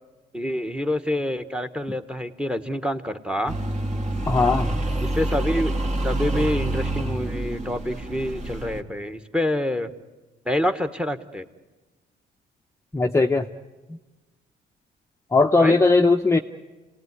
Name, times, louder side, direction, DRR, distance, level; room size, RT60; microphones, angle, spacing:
voice 1, 0.3-3.5 5.0-5.7 6.0-9.9 10.4-11.4 15.6-15.8, left 1 dB, 5° right, 10 dB, 1.4 m, -27 dB
sound 1, 3.5-8.8, right 1 dB, 35° right, 2.3 m, -27 dB
voice 2, 4.3-4.8 12.9-13.5 15.3-16.4, left 3 dB, 15° left, 3 dB, 0.8 m, -19 dB
29.5 x 18.5 x 9.6 m, 1.2 s
cardioid pair, 90°, 20 cm